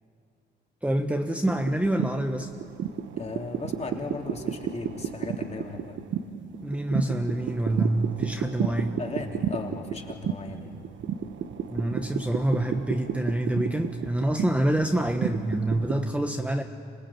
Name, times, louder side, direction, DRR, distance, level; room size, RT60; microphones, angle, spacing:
voice 1, 0.8-2.5 6.6-9.0 11.7-16.6, right 1 dB, 5° right, 4 dB, 1.3 m, -26 dB
sound 1, 1.5-16.1, right 8 dB, 70° right, 1.3 m, -33 dB
voice 2, 3.2-5.9 8.7-10.8, left 3 dB, 35° left, 1 dB, 3.2 m, -37 dB
27.0 x 19.0 x 8.8 m, 2.2 s
cardioid pair, 90°, 20 cm